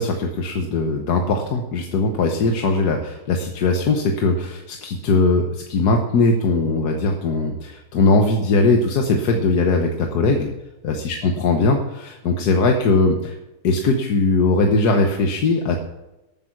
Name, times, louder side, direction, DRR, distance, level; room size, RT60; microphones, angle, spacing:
voice 1, 0.0-10.5 10.8-13.4 13.6-15.8, left 3 dB, 80° left, 3 dB, 1.6 m, -20 dB
12.5 x 9.3 x 5.9 m, 1.0 s
omnidirectional pair, 1.7 m